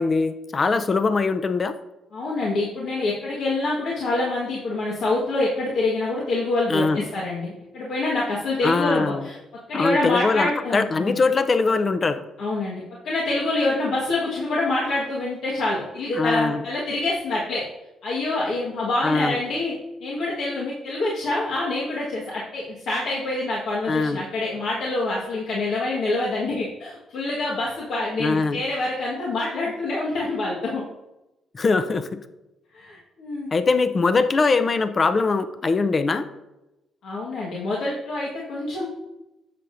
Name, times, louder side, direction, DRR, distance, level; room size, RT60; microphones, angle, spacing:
voice 1, 0.0-1.8 6.7-7.1 8.6-9.3 9.7-12.2 16.2-16.6 19.0-19.4 23.9-24.2 28.2-28.6 31.5-32.2 33.5-36.3, left 4 dB, 35° left, 10 dB, 0.6 m, -22 dB
voice 2, 2.1-9.4 9.7-11.2 12.4-17.7 18.0-30.8 32.7-33.5 37.0-38.9, left 2 dB, 70° left, -5 dB, 1.5 m, -26 dB
9.8 x 6.9 x 2.6 m, 0.97 s
cardioid pair, 90°, 0 cm